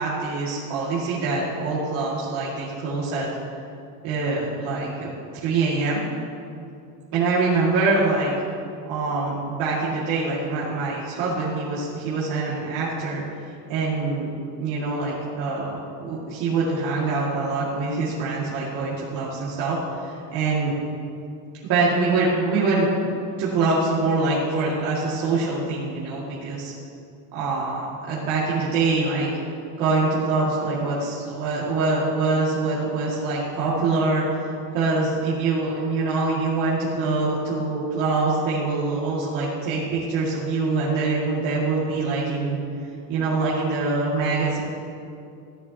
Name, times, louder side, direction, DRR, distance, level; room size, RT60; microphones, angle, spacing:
voice 1, 0.0-3.3 4.0-5.1 5.4-6.0 7.1-8.3 8.9-13.2 13.7-14.3 14.6-20.7 21.6-23.1 23.4-26.7 27.3-29.3 29.8-34.2 34.7-42.6 43.1-44.6, right 3 dB, 60° right, -8 dB, 2.2 m, -24 dB
14.5 x 10.5 x 2.9 m, 2.5 s
cardioid pair, 170°, 38 cm